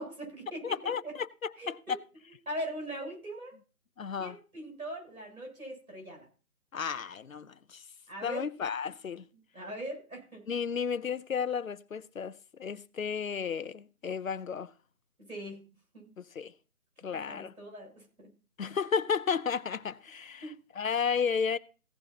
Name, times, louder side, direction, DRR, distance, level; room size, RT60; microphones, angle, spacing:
voice 1, 0.0-0.8 1.0-1.1 1.6-2.0 2.5-3.5 4.2-6.2 8.1-8.5 9.5-10.4 15.3-15.6 15.9-16.1 17.3-18.3 20.4-20.5, right 1 dB, 70° right, 7.6 m, -40 dB
voice 2, 0.6-2.0 4.0-4.4 6.7-7.8 8.2-9.3 10.5-14.7 16.2-16.5 17.0-17.5 18.6-21.6, left 6 dB, 65° left, 0.7 m, -33 dB
16.0 x 11.0 x 2.8 m
figure-of-eight pair, 160°, 44 cm